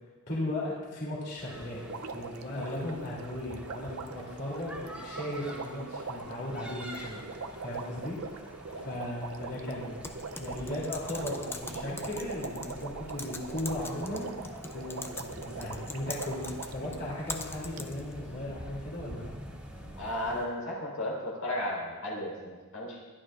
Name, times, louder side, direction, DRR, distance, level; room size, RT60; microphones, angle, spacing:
voice 1, 0.3-7.2 7.6-10.0 10.4-14.3 14.7-19.3, left 1 dB, 50° left, -5 dB, 3.0 m, -37 dB
sound 1, 1.4-20.4, equal, 5° right, 2.6 m, -47 dB
Water, 1.8-16.9 17.8-17.9, right 4 dB, 75° right, 0.6 m, -42 dB
Typing, 10.0-18.2, left 2 dB, 10° left, 0.6 m, -43 dB
voice 2, 20.0-23.0, left 1 dB, 90° left, -4 dB, 4.3 m, -35 dB
21.0 x 11.5 x 2.5 m, 1.4 s
head